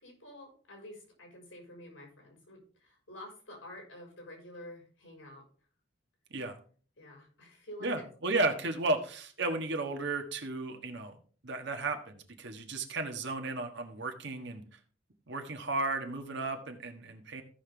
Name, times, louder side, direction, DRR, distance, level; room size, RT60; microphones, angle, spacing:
voice 1, 0.0-5.4 7.0-7.9, left 1 dB, 85° left, 1 dB, 4.5 m, -49 dB
voice 2, 7.8-11.2 11.4-14.6 15.3-17.4, right 2 dB, 65° right, 5 dB, 1.5 m, -34 dB
15.5 x 5.8 x 3.4 m, 0.43 s
head